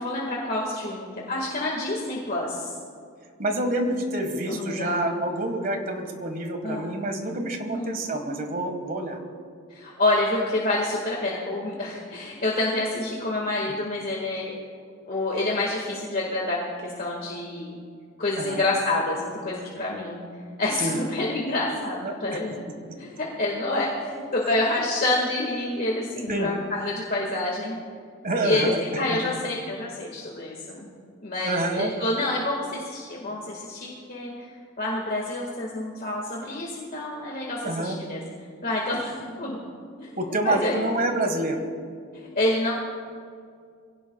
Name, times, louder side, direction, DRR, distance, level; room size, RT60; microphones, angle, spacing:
voice 1, 0.0-2.7 4.5-5.1 6.6-6.9 7.7-7.9 9.7-14.5 15.1-17.8 18.2-20.3 20.6-22.5 23.0-27.8 28.4-30.9 31.2-34.5 34.8-38.2 38.6-39.6 40.0-40.1 40.4-40.9 42.4-42.7, left 2 dB, 45° left, -2 dB, 1.8 m, -28 dB
voice 2, 3.4-9.2 18.4-18.6 20.8-21.0 22.0-22.4 26.3-26.5 28.2-28.8 29.3-29.4 31.4-31.9 37.6-38.0 40.2-41.6, right 1 dB, 45° right, 5 dB, 1.6 m, -27 dB
23.5 x 17.0 x 2.3 m, 2.2 s
head